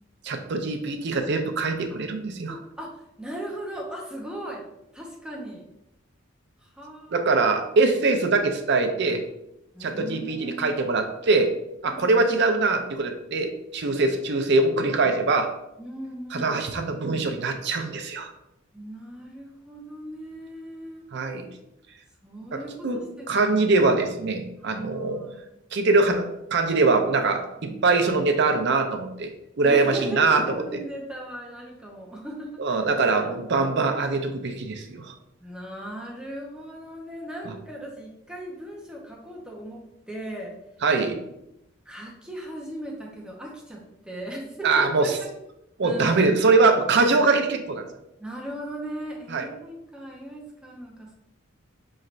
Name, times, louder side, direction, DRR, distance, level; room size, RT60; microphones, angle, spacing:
voice 1, 0.2-2.6 7.1-9.2 9.8-11.5 11.8-15.5 16.3-18.3 21.1-21.5 22.5-25.2 25.7-26.2 26.5-30.6 32.6-35.1 40.8-41.2 44.6-45.1 45.8-47.8 49.3-49.5, right 3 dB, 55° right, 6 dB, 0.5 m, -23 dB
voice 2, 2.5-4.7 4.9-5.6 6.6-7.3 9.7-10.9 11.8-12.3 15.8-16.9 18.7-21.1 22.2-23.4 24.7-25.4 27.6-28.1 29.6-32.8 33.1-33.2 35.4-40.5 41.9-45.1 45.8-46.6 48.2-51.1, right 1 dB, 5° right, -2 dB, 0.6 m, -38 dB
5.5 x 3.2 x 2.5 m, 0.86 s
head